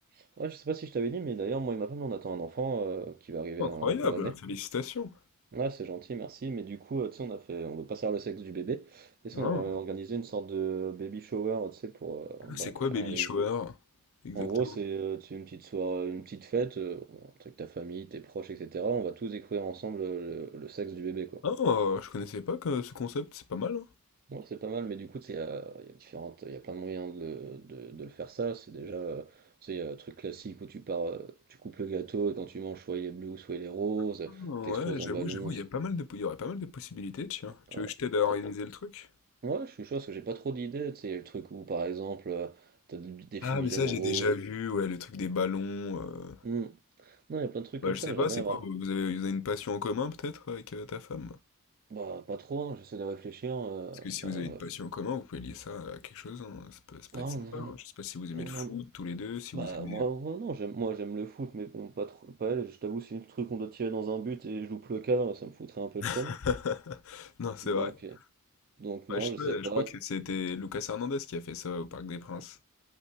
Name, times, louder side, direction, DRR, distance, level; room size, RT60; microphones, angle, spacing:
voice 1, 0.4-4.3 5.5-13.3 14.3-21.4 24.3-29.3 29.6-31.3 31.6-35.6 37.7-37.9 39.4-42.6 42.9-44.3 46.4-46.8 47.1-48.6 51.9-54.6 57.1-57.7 58.3-58.7 59.5-66.3 67.6-68.2 68.8-69.9, right 5 dB, 40° right, 0.4 m, -35 dB
voice 2, 3.6-5.2 9.3-9.7 12.5-13.8 14.2-14.8 21.4-23.9 34.3-39.1 43.4-46.4 47.8-51.4 54.0-60.0 66.0-68.0 69.1-72.6, left 5 dB, 65° left, 0.5 m, -34 dB
5.5 x 2.1 x 4.2 m
head